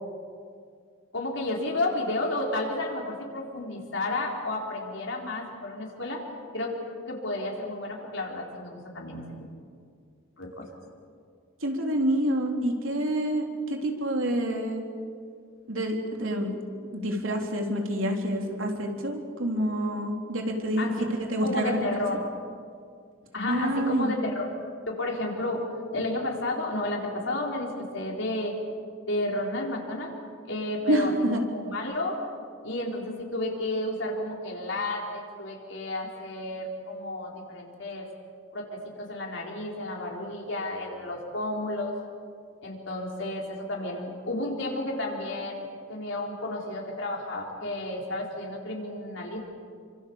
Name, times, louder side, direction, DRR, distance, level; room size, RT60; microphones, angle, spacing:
voice 1, 1.1-6.2 6.5-6.7 7.1-9.2 10.4-10.6 20.8-21.1 21.4-22.2 23.3-24.5 24.9-25.6 25.9-28.5 29.1-30.1 30.5-31.1 31.5-32.2 32.6-38.1 38.5-41.9 42.6-49.4, left 2 dB, 70° left, -1 dB, 4.2 m, -32 dB
voice 2, 11.6-14.8 15.7-16.6 16.9-22.0 23.5-24.2 30.9-31.4, right 1 dB, 80° right, 2 dB, 3.5 m, -27 dB
27.5 x 25.5 x 7.2 m, 2.2 s
head